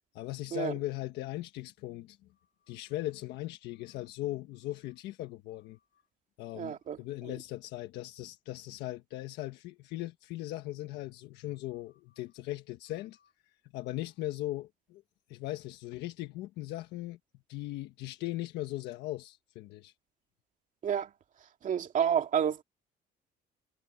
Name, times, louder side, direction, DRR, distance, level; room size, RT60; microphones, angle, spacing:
voice 1, 0.1-2.2 2.6-6.0 6.4-13.3 13.7-15.0 15.3-17.2 17.5-19.9, left 16 dB, 85° left, 1.4 m, -39 dB
voice 2, 6.6-7.0 20.8-21.1 21.6-22.6, right 8 dB, 50° right, 2.4 m, -29 dB
cardioid pair, 110°, 17 cm